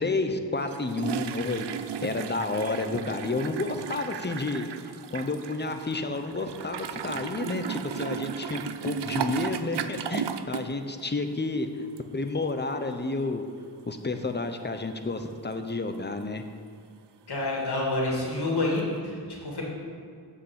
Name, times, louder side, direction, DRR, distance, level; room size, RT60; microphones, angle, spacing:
voice 1, 0.0-1.7 2.0-4.7 5.1-11.7 12.1-13.4 13.9-16.4, left 3 dB, 25° left, 7 dB, 0.8 m, -30 dB
sound 1, 0.6-10.7 11.0-11.3 12.0-12.1 12.4-12.5 18.8-18.9, right 8 dB, 80° right, 0.6 m, -35 dB
voice 2, 17.3-19.6, left 2 dB, 70° left, -2 dB, 2.5 m, -28 dB
7.9 x 6.5 x 7.7 m, 2.3 s
wide cardioid pair, 80°, 41 cm